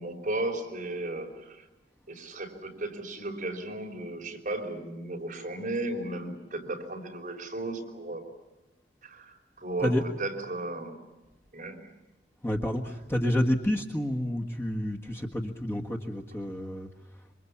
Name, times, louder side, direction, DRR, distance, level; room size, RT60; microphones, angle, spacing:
voice 1, 0.0-1.6 2.1-8.2 9.0-9.9 10.2-11.0 11.5-11.9, right 2 dB, 45° right, 1 dB, 5.0 m, -35 dB
voice 2, 12.4-17.3, left 1 dB, 15° left, 1 dB, 1.6 m, -29 dB
27.5 x 24.5 x 8.6 m, 1.0 s
head